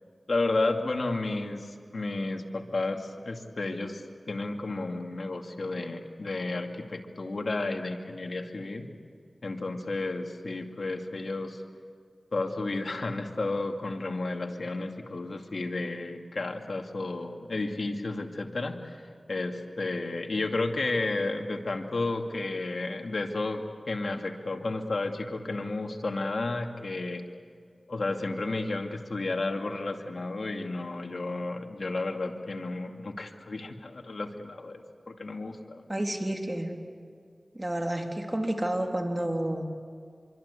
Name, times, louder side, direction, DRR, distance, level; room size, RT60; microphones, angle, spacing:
voice 1, 0.3-8.9 9.4-11.6 12.3-27.3 27.9-35.8, left 2 dB, 75° left, 3 dB, 2.4 m, -32 dB
voice 2, 35.9-36.7 37.5-39.7, right 1 dB, 25° right, 2 dB, 3.6 m, -30 dB
25.5 x 24.0 x 8.4 m, 2.1 s
wide cardioid pair, 45°, 0 cm